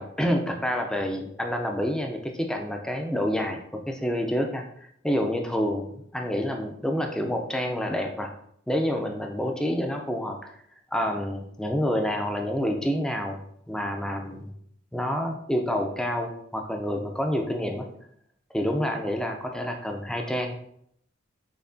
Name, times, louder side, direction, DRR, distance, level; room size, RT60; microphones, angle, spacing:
voice 1, 0.0-8.3 8.7-10.5 10.9-13.4 13.7-14.5 14.9-17.9 18.5-20.6, equal, 5° left, 3 dB, 0.4 m, -28 dB
6.5 x 2.8 x 2.6 m, 0.70 s
head